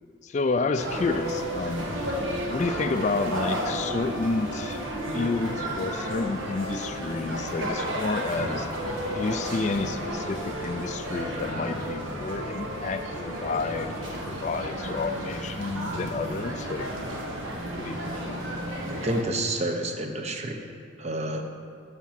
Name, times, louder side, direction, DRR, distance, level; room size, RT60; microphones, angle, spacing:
voice 1, 0.2-1.9 2.5-4.8 5.1-8.7 9.1-16.9 17.8-18.4, left 3 dB, 35° left, 8 dB, 0.3 m, -30 dB
sound 1, 0.8-19.2, equal, 80° right, 1.6 m, -32 dB
voice 2, 18.9-20.6 21.0-21.4, right 1 dB, 35° right, 4 dB, 0.8 m, -29 dB
13.5 x 4.9 x 5.8 m, 2.4 s
head